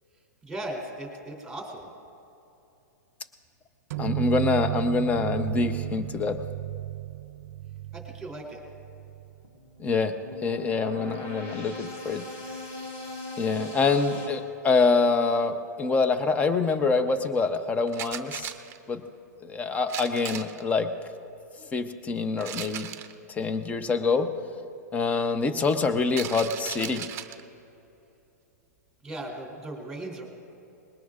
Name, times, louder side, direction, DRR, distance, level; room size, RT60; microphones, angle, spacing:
voice 1, 0.4-1.9 7.9-8.6 29.0-30.2, right 1 dB, 5° right, 0 dB, 3.1 m, -37 dB
sound 1, 3.9-9.4, right 16 dB, 60° right, 0.4 m, -33 dB
voice 2, 4.0-6.4 9.8-10.2 10.4-12.3 13.4-18.5 18.9-19.0 19.4-20.9 21.7-22.9 23.3-24.3 24.9-27.1, left 4 dB, 15° left, 10 dB, 0.7 m, -25 dB
sound 2, 9.4-14.3, left 2 dB, 50° left, 4.0 m, -39 dB
sound 3, 17.9-18.8 19.9-20.6 22.4-23.1 26.1-27.4, right 11 dB, 25° right, 0.7 m, -37 dB
21.0 x 19.0 x 2.5 m, 2.8 s
hypercardioid pair, 130°, 9 cm